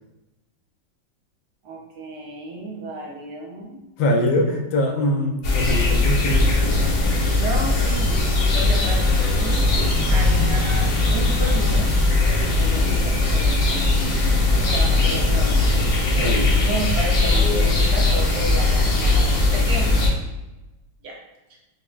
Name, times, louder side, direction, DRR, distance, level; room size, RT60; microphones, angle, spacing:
voice 1, 1.6-3.8 7.3-8.2 8.5-9.7 10.1-12.0 12.2-13.8 14.5-15.6 16.1-20.0 21.0-21.2, right 2 dB, 70° right, -2 dB, 1.2 m, -32 dB
voice 2, 4.0-6.8 16.2-16.5 17.3-17.7, left 1 dB, 85° left, 3 dB, 1.3 m, -23 dB
sound 1, 5.4-20.1, left 2 dB, 65° left, 1.2 m, -19 dB
5.7 x 2.0 x 2.3 m, 1.0 s
omnidirectional pair, 2.0 m